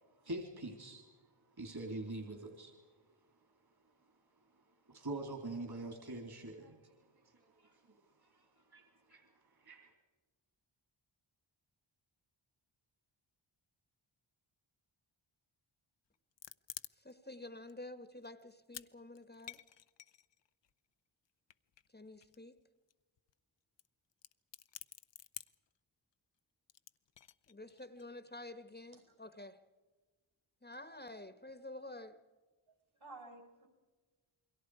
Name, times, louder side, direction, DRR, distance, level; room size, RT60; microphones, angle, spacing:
voice 1, 0.2-1.0 1.6-2.7 4.9-9.9, right 2 dB, 50° right, 3.2 m, -45 dB
sound 1, 16.1-17.3 17.7-17.8 18.2-18.9 19.1-20.7 21.5-22.6 22.9-23.0 23.2-23.3 23.8-23.9 24.1-25.7 26.7-28.0, left 10 dB, 60° left, 0.7 m, -51 dB
voice 2, 17.0-19.6 21.9-22.6 27.5-29.6 30.6-32.2, left 2 dB, 20° left, 1.2 m, -50 dB
voice 3, 32.7-33.7, right 2 dB, 65° right, 6.7 m, -55 dB
29.0 x 22.5 x 4.8 m
cardioid pair, 60°, 50 cm